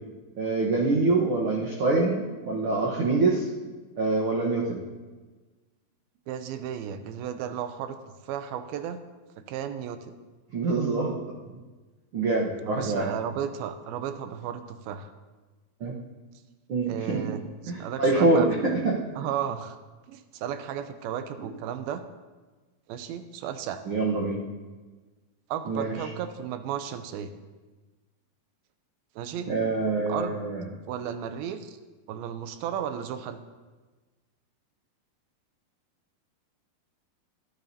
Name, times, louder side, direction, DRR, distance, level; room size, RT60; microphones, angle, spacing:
voice 1, 0.4-3.5 4.0-4.8 10.5-11.1 12.1-13.0 15.8-15.9 16.7-17.2 17.7-18.5 23.9-24.4 25.7-25.9 29.5-30.6, right 3 dB, 70° right, -3 dB, 1.2 m, -25 dB
voice 2, 6.3-8.0 8.2-9.0 9.5-10.1 12.6-15.1 16.9-18.5 19.2-19.8 20.1-22.0 22.9-23.8 25.5-27.3 29.2-29.5 30.0-30.4 30.9-31.8 32.1-33.4, right 9 dB, 85° right, 10 dB, 2.6 m, -34 dB
24.0 x 8.9 x 2.8 m, 1.3 s
omnidirectional pair, 4.2 m